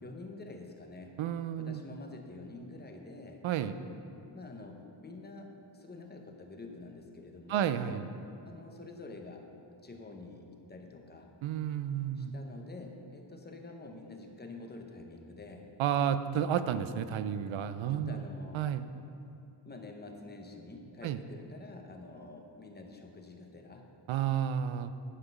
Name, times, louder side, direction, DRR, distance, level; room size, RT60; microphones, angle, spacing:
voice 1, 0.0-1.2 1.6-3.4 4.3-7.8 8.4-9.4 9.8-11.3 12.1-15.7 17.5-17.6 17.9-18.6 19.6-23.9, left 2 dB, 20° left, 3 dB, 0.7 m, -47 dB
voice 2, 1.2-1.8 3.4-3.7 7.5-8.0 11.4-12.3 15.8-18.2 18.5-18.9 21.0-21.2 24.1-24.9, right 9 dB, 80° right, 12 dB, 0.6 m, -31 dB
9.9 x 5.9 x 5.4 m, 2.7 s
wide cardioid pair, 165°, 46 cm